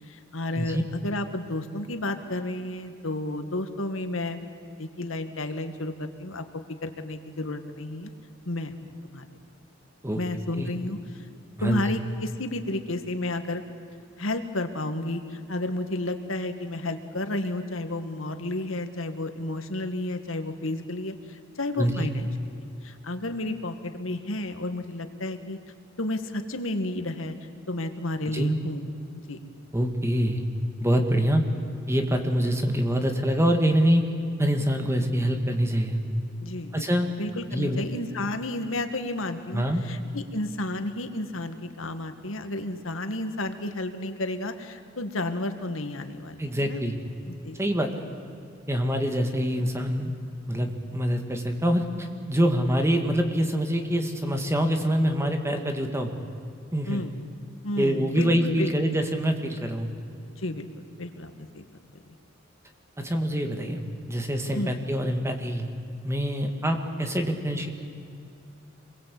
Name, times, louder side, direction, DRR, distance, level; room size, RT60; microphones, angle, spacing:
voice 1, 0.1-4.4 4.8-6.4 6.8-8.1 8.5-9.3 10.1-11.3 11.6-13.6 14.2-25.6 26.0-27.4 27.7-28.9 29.3-29.4 36.4-36.9 37.2-46.8 47.3-47.6 56.9-57.1 57.6-58.7 60.4-60.7 61.0-61.6 64.5-64.7, left 1 dB, 90° left, 8 dB, 1.9 m, -32 dB
voice 2, 21.8-22.1 28.3-28.6 29.7-30.4 30.8-31.4 31.9-34.0 34.4-36.0 36.7-37.1 37.5-37.9 39.5-39.8 46.4-47.0 47.6-48.1 48.7-50.1 50.5-56.1 56.7-57.0 57.8-59.9 63.0-65.7 66.0-67.7, equal, 15° right, 5 dB, 2.1 m, -25 dB
27.0 x 22.0 x 8.5 m, 2.5 s
head